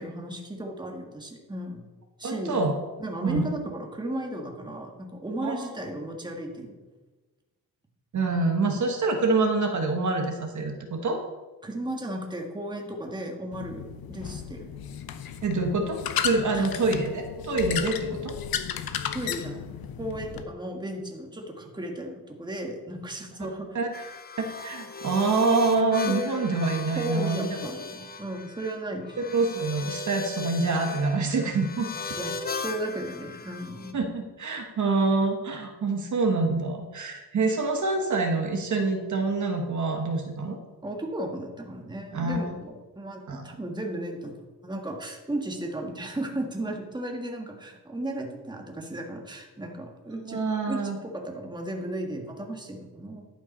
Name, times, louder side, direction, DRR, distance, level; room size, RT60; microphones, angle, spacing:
voice 1, 0.0-1.9 2.2-2.6 3.0-6.7 11.6-14.7 16.5-16.7 19.1-23.8 26.1-26.3 26.9-29.2 32.2-34.0 40.8-50.4 50.7-53.3, right 1 dB, 10° right, 1 dB, 1.6 m, -35 dB
voice 2, 2.2-2.7 3.2-3.5 5.4-5.7 8.1-11.2 15.4-16.0 16.2-18.3 23.7-24.1 24.4-27.6 29.3-31.9 33.9-40.6 42.1-42.4 43.3-43.4 50.2-51.0, right 3 dB, 50° right, 3 dB, 1.3 m, -26 dB
sound 1, 13.5-20.4, left 8 dB, 75° left, 0.8 m, -34 dB
sound 2, 23.9-33.9, left 4 dB, 25° left, 0.8 m, -38 dB
11.5 x 5.8 x 5.3 m, 1.2 s
cardioid pair, 110°, 37 cm